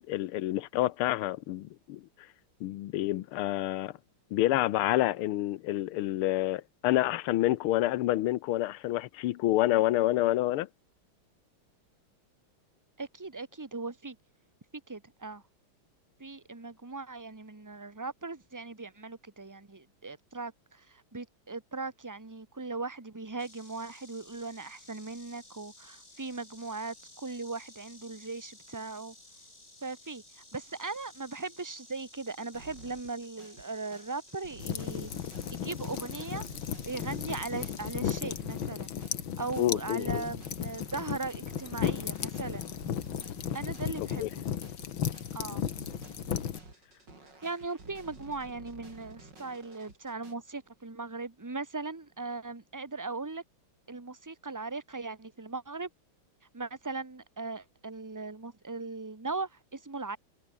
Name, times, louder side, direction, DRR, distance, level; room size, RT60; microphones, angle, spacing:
voice 1, 0.0-2.0 2.6-3.9 4.3-10.7 39.6-40.2 44.2-44.3, left 15 dB, 85° left, 1.7 m, -28 dB
voice 2, 13.0-14.2 14.9-15.4 16.2-29.1 29.8-35.1 35.5-36.4 36.8-38.9 39.4-42.6 43.5-44.4 45.3-45.6 47.4-53.4 53.9-55.9 56.5-60.2, right 3 dB, 10° right, 1.3 m, -39 dB
Insect, 23.4-38.0, left 2 dB, 35° left, 6.9 m, -55 dB
sound 1, 32.5-50.3, right 3 dB, 55° right, 6.2 m, -52 dB
sound 2, 34.6-46.6, left 9 dB, 70° left, 2.2 m, -35 dB
omnidirectional pair, 2.3 m